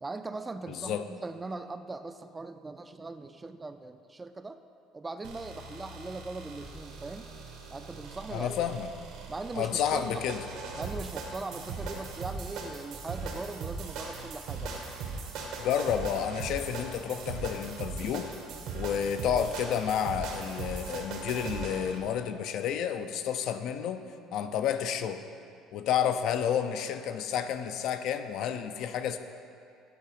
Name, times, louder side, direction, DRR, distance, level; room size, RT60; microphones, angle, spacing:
voice 1, 0.0-4.6 4.9-7.3 7.7-8.6 9.3-10.2 10.7-14.8, right 3 dB, 15° right, 10 dB, 0.3 m, -40 dB
voice 2, 0.7-1.0 8.3-8.9 9.6-10.4 15.6-18.3 18.7-24.0 24.3-25.2 25.7-29.2, left 8 dB, 65° left, 9 dB, 0.4 m, -30 dB
sound 1, 5.2-22.0, right 4 dB, 75° right, 1.1 m, -39 dB
9.3 x 3.8 x 4.9 m, 2.4 s
cardioid pair, 120°, 0 cm